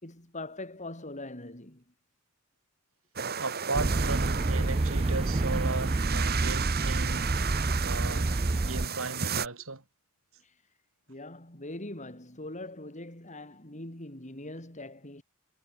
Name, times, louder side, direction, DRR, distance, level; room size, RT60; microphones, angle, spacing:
voice 1, 0.0-1.8 10.4-10.5 11.1-15.2, left 2 dB, 35° left, 5.3 m, -42 dB
sound 1, 3.2-9.5, right 7 dB, 45° right, 2.6 m, -34 dB
voice 2, 3.4-8.3 8.6-9.8, right 3 dB, 65° right, 4.0 m, -36 dB
sound 2, 3.7-8.9, right 2 dB, 25° right, 0.6 m, -28 dB
head